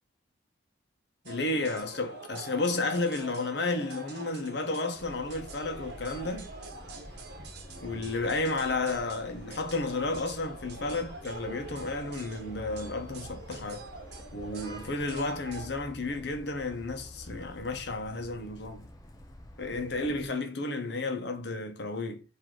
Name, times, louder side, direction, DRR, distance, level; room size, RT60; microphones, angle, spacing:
voice 1, 1.2-6.5 7.8-13.8 14.3-18.9 19.6-22.2, left 2 dB, 60° left, 0.9 m, -32 dB
sound 1, 1.3-15.7, right 3 dB, 60° right, 1.0 m, -46 dB
sound 2, 5.0-20.3, left 1 dB, 20° left, 0.6 m, -48 dB
4.7 x 2.8 x 3.8 m
head